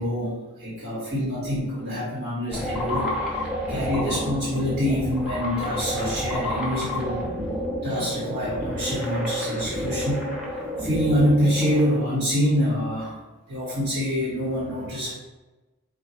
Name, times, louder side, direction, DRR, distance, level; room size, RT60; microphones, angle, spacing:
voice 1, 0.0-3.1 3.7-7.2 7.8-10.3 10.8-13.2 13.5-15.1, equal, 50° right, -8 dB, 1.3 m, -25 dB
sound 1, 2.5-12.0, equal, 5° right, 0.7 m, -30 dB
3.8 x 2.3 x 4.3 m, 1.1 s
head